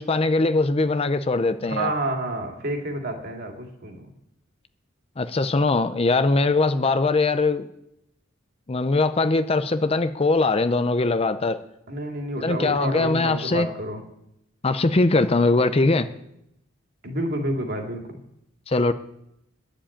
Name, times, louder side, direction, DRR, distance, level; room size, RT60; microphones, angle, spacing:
voice 1, 0.0-1.9 5.2-7.7 8.7-11.6 12.4-13.7 14.6-16.1 18.7-18.9, left 3 dB, 30° left, 11 dB, 0.5 m, -21 dB
voice 2, 1.6-4.0 11.9-14.0 17.0-18.2, right 1 dB, 50° right, 2 dB, 2.5 m, -29 dB
11.5 x 7.7 x 8.6 m, 0.79 s
head